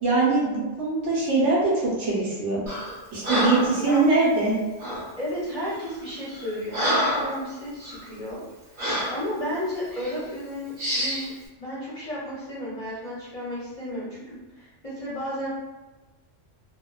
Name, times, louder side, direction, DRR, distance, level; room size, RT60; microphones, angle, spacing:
voice 1, 0.0-2.6 3.1-4.5, right 3 dB, 80° right, -4 dB, 1.1 m, -22 dB
Breathing, 2.7-2.9 3.2-3.8 4.8-5.1 5.7-5.9 6.3-7.4 7.8-8.0 8.8-9.2 9.9-10.1 10.8-11.3, equal, 50° right, 1.0 m, -27 dB
voice 2, 5.2-8.4 9.1-11.3 11.6-15.5, equal, 40° left, -9 dB, 0.6 m, -33 dB
2.7 x 2.1 x 2.2 m, 1.2 s
omnidirectional pair, 1.2 m